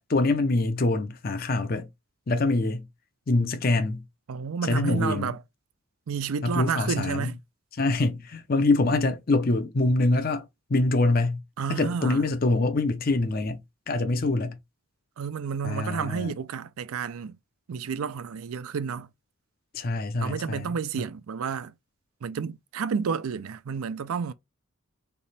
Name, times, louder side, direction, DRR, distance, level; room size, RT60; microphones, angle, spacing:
voice 1, 0.1-1.9 2.3-2.9 3.3-4.0 4.6-5.3 6.4-7.3 7.7-11.4 11.7-13.6 13.9-14.6 15.6-16.3 19.7-21.1, left 2 dB, 40° left, 0.5 m, -25 dB
voice 2, 4.3-5.4 6.1-7.4 11.6-12.3 15.2-17.4 17.7-19.1 20.2-21.7 22.2-24.3, right 6 dB, 80° right, 0.4 m, -31 dB
3.4 x 2.8 x 4.0 m
head